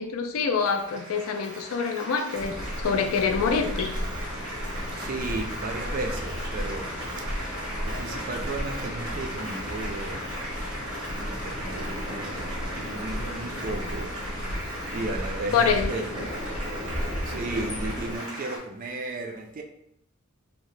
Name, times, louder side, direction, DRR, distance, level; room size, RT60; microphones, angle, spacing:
voice 1, 0.0-2.6 2.8-3.9 15.5-15.9, left 5 dB, 80° left, 6 dB, 0.4 m, -25 dB
Applause, 0.5-18.6, equal, 85° right, 1.2 m, -37 dB
sound 1, 2.3-18.2, equal, 30° left, 0.6 m, -34 dB
voice 2, 5.0-6.8 7.2-7.3 7.8-10.3 11.2-16.1 17.2-19.6, right 2 dB, 40° right, 2 dB, 0.4 m, -35 dB
2.7 x 2.1 x 3.1 m, 0.76 s
head